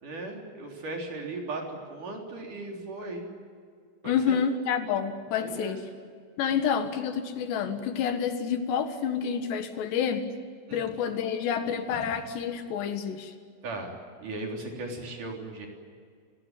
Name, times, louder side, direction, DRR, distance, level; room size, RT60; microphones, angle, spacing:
voice 1, 0.0-3.2 4.0-4.4 5.4-5.8 10.7-10.9 11.9-12.1 13.6-13.9 14.2-15.7, right 2 dB, 50° right, 1 dB, 4.9 m, -37 dB
voice 2, 4.0-5.8 6.4-10.2 10.7-13.3, left 7 dB, 85° left, 8 dB, 3.9 m, -28 dB
30.0 x 17.5 x 9.2 m, 2.1 s
omnidirectional pair, 4.8 m